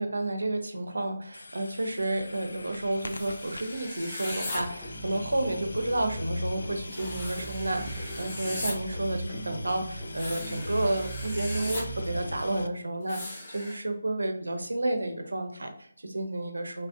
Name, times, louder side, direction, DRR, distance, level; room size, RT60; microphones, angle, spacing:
voice 1, 0.0-16.9, right 1 dB, 80° right, 6 dB, 0.7 m, -31 dB
sound 1, 1.3-12.7, left 2 dB, 70° left, 0.3 m, -44 dB
sound 2, 3.0-4.6 6.8-8.8 10.1-11.8 13.1-13.8, left 2 dB, 35° left, 0.8 m, -38 dB
sound 3, 4.5-12.7, right 1 dB, 10° left, 1.1 m, -38 dB
4.1 x 2.5 x 2.3 m, 0.65 s
figure-of-eight pair, 155°, 0 cm